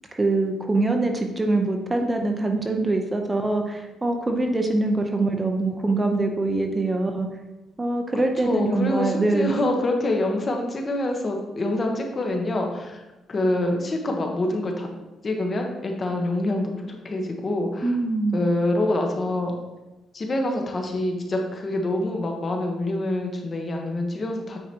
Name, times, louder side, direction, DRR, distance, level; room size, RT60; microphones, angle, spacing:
voice 1, 0.1-7.3 7.8-9.6 17.8-18.5, right 2 dB, 20° right, 3 dB, 0.8 m, -24 dB
voice 2, 8.4-13.0 13.3-14.9 15.2-18.0 18.3-19.6 20.1-24.6, left 1 dB, 35° left, 2 dB, 1.2 m, -26 dB
9.0 x 5.0 x 2.9 m, 1.0 s
cardioid pair, 90°, 0 cm